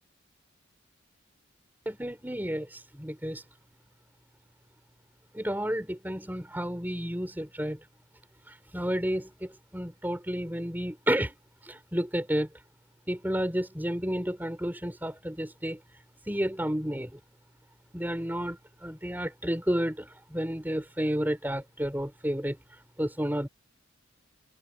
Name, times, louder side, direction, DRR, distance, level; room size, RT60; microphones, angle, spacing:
voice 1, 1.9-3.4 5.3-7.8 8.7-11.3 11.6-12.5 13.1-15.8 16.3-17.2 17.9-22.6 23.0-23.5, equal, 10° right, 4.4 m, -31 dB
head